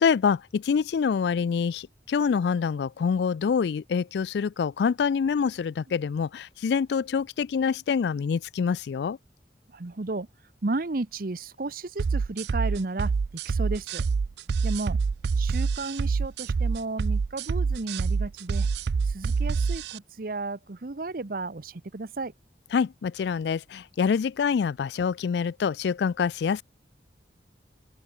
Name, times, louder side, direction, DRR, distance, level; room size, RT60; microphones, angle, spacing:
voice 1, 0.0-9.2 22.7-26.6, left 6 dB, 70° left, 0.3 m, -26 dB
voice 2, 9.7-10.3 10.6-13.1 13.4-14.0 14.6-15.0 15.4-18.7 19.1-22.3, right 3 dB, 50° right, 0.8 m, -33 dB
sound 1, 12.0-20.0, right 5 dB, 70° right, 0.4 m, -26 dB
head